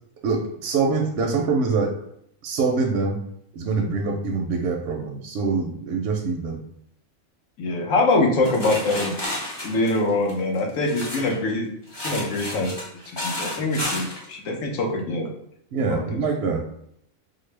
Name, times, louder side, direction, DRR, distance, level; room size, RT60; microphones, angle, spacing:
voice 1, 0.2-1.9 2.4-3.2 3.5-6.6 15.7-16.6, right 4 dB, 65° right, 1 dB, 0.7 m, -24 dB
voice 2, 7.6-9.1 9.6-11.7 12.0-12.8 13.1-15.3 15.9-16.2, left 2 dB, 75° left, 0 dB, 1.2 m, -24 dB
sound 1, 8.4-11.4 11.9-14.3, left 1 dB, 30° left, 0.5 m, -32 dB
4.6 x 2.1 x 3.2 m, 0.70 s
omnidirectional pair, 1.4 m